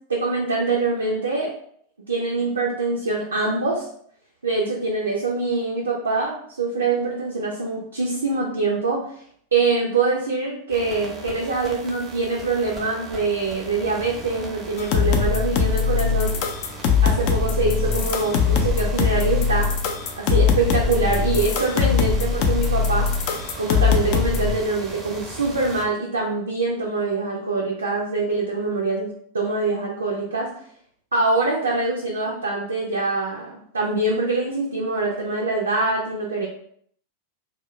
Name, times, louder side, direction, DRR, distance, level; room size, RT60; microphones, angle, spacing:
voice 1, 0.1-1.5 2.1-3.9 4.4-9.0 9.5-16.4 17.0-19.7 20.2-23.1 23.6-30.5 31.1-36.5, right 3 dB, 75° right, -2 dB, 0.4 m, -24 dB
sound 1, 10.7-25.8, right 2 dB, 20° right, 0.5 m, -38 dB
sound 2, 14.8-24.5, left 6 dB, 45° left, 0.3 m, -21 dB
2.1 x 2.0 x 3.0 m, 0.63 s
figure-of-eight pair, 90°, 0 cm